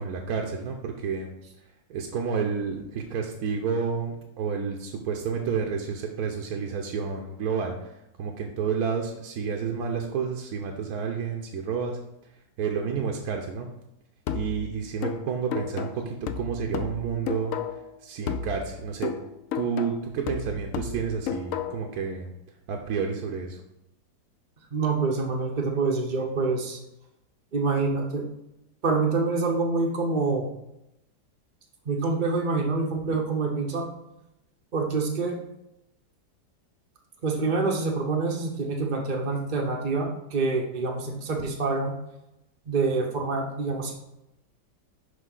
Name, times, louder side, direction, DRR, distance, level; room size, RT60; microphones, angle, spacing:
voice 1, 0.0-1.3 1.9-7.9 8.2-12.0 12.6-13.7 14.3-17.6 18.0-19.1 19.5-22.3 22.7-23.6, right 6 dB, 70° right, 2 dB, 1.1 m, -30 dB
sound 1, 14.3-17.9 18.3-21.9, left 7 dB, 75° left, 0.7 m, -33 dB
voice 2, 24.7-26.8 27.5-28.2 28.8-30.5 31.9-33.9 34.7-35.4 37.2-41.9 42.7-43.9, right 3 dB, 45° right, 0 dB, 0.6 m, -26 dB
6.3 x 5.2 x 3.8 m, 0.88 s
omnidirectional pair, 1.9 m